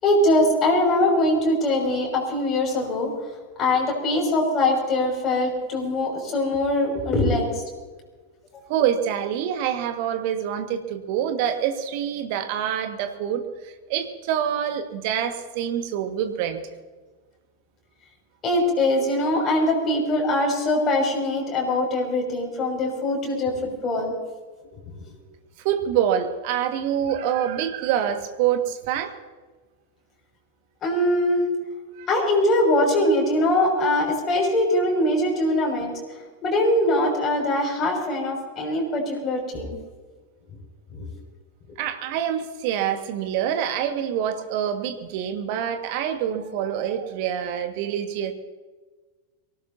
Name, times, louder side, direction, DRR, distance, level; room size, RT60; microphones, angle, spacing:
voice 1, 0.0-3.1 3.6-7.6 18.4-24.1 30.8-31.5 32.1-35.9 36.4-39.8 40.9-41.0 41.7-41.8, left 1 dB, 25° left, 0 dB, 6.2 m, -22 dB
voice 2, 8.7-16.6 25.6-29.1 32.0-32.1 41.8-48.3, right 9 dB, 45° right, 7 dB, 1.7 m, -26 dB
23.5 x 18.0 x 2.8 m, 1.3 s
figure-of-eight pair, 90°, 0 cm